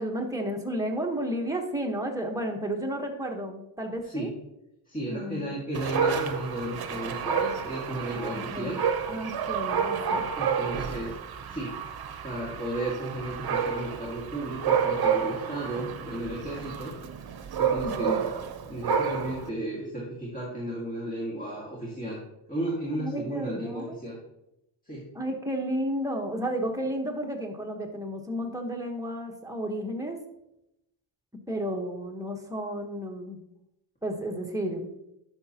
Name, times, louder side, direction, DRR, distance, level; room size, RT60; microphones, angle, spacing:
voice 1, 0.0-4.3 5.1-5.6 8.1-8.8 9.1-10.3 17.8-18.2 23.0-24.0 25.1-30.2 31.5-33.4 34.0-34.9, equal, 5° right, 1 dB, 1.2 m, -32 dB
voice 2, 4.9-8.8 10.4-11.1 11.5-11.8 12.2-16.9 17.6-18.3 18.7-22.2 22.5-24.2 24.9-25.1, right 1 dB, 15° left, -5 dB, 1.8 m, -34 dB
Dog, 5.7-19.5, right 7 dB, 50° right, 0.9 m, -30 dB
11.0 x 6.1 x 2.9 m, 0.85 s
cardioid pair, 115°, 48 cm